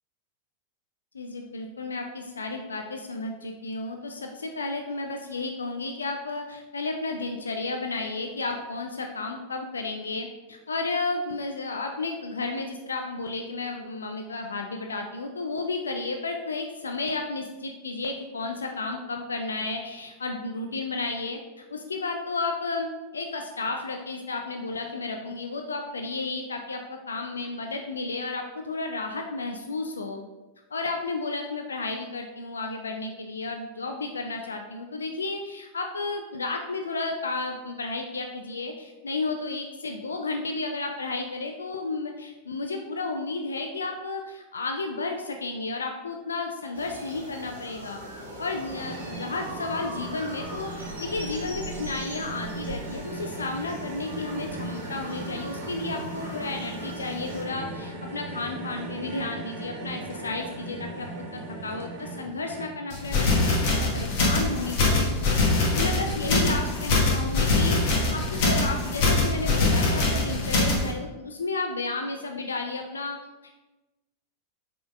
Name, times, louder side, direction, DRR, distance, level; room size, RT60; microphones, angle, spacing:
voice 1, 1.1-30.2 30.7-48.0 48.4-65.1 65.7-73.2, left 3 dB, 75° left, 3 dB, 0.3 m, -32 dB
sound 1, 46.7-57.4, right 1 dB, 80° right, 0.9 m, -41 dB
sound 2, 48.7-62.7, right 2 dB, 50° right, 1.0 m, -38 dB
sound 3, 62.9-70.9, left 3 dB, 50° left, 1.0 m, -23 dB
5.0 x 3.7 x 2.4 m, 1.1 s
figure-of-eight pair, 90°, 0 cm